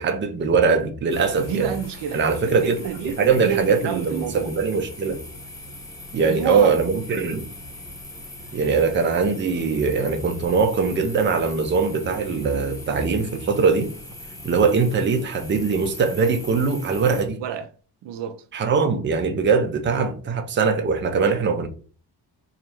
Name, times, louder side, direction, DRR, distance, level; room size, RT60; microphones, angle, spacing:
voice 1, 0.0-1.7 2.1-2.8 3.0-5.2 6.1-7.5 8.5-13.9 14.4-17.4 18.5-21.7, right 5 dB, 30° right, 0.5 m, -21 dB
sound 1, 1.1-17.2, left 1 dB, 5° left, 0.8 m, -40 dB
voice 2, 1.4-4.5 6.2-6.8 17.4-17.7 18.0-18.4, right 9 dB, 90° right, 0.6 m, -29 dB
3.1 x 2.5 x 4.4 m
cardioid pair, 160°, 41 cm